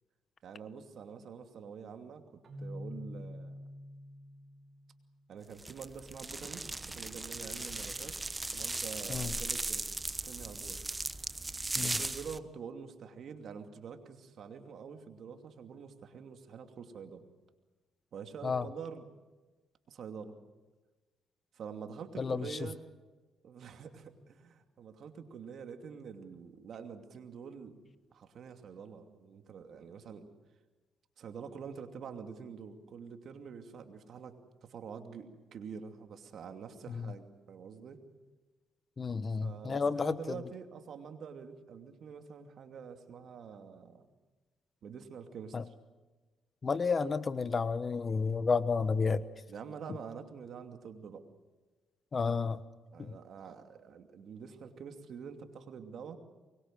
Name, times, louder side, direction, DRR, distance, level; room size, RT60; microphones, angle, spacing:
voice 1, 0.4-2.2 2.6-3.7 5.3-8.2 8.5-10.8 11.8-17.2 18.1-19.1 19.9-20.4 21.5-22.8 23.4-27.8 28.1-30.3 31.2-34.4 34.7-38.0 39.4-44.1 44.8-45.7 49.5-51.2 52.9-56.2, right 6 dB, 65° right, 6 dB, 2.6 m, -46 dB
Keyboard (musical), 2.4-5.3, left 1 dB, 45° right, 6.1 m, -46 dB
sound 1, 5.6-12.4, right 2 dB, 20° right, 1.0 m, -37 dB
voice 2, 22.2-22.6 36.9-37.1 39.0-40.4 45.5-45.6 46.6-49.2 52.1-52.6 53.0-53.2, left 5 dB, 35° left, 14 dB, 1.1 m, -31 dB
24.0 x 22.0 x 7.6 m, 1.2 s
cardioid pair, 90°, 0 cm